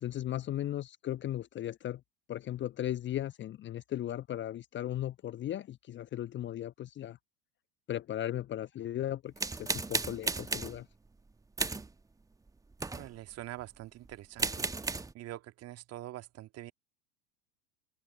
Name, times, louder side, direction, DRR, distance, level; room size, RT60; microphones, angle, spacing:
voice 1, 0.0-2.0 2.3-7.2 7.9-9.3 9.6-10.9, left 12 dB, 25° left, 1.2 m, -36 dB
sound 1, 9.4-10.8 11.6-11.9 12.7-13.1 14.1-14.2 14.4-15.1, right 3 dB, 5° right, 1.4 m, -34 dB
voice 2, 12.9-14.7 15.1-16.7, right 15 dB, 30° right, 2.0 m, -45 dB
open air
figure-of-eight pair, 90°, 48 cm